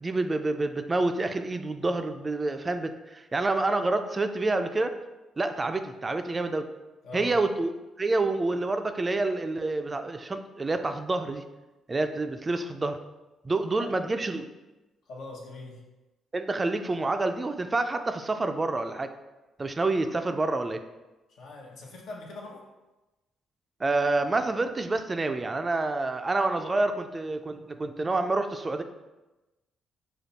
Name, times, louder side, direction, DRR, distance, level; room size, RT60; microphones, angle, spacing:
voice 1, 0.0-4.9 5.4-6.7 7.1-7.7 8.0-11.4 11.9-13.0 13.4-14.5 16.3-19.1 19.6-20.8 23.8-28.8, right 2 dB, 25° right, 7 dB, 0.3 m, -28 dB
voice 2, 15.1-15.8 21.3-22.7, left 2 dB, 75° left, -2 dB, 1.0 m, -42 dB
5.1 x 2.3 x 4.0 m, 1.1 s
cardioid pair, 90°, 0 cm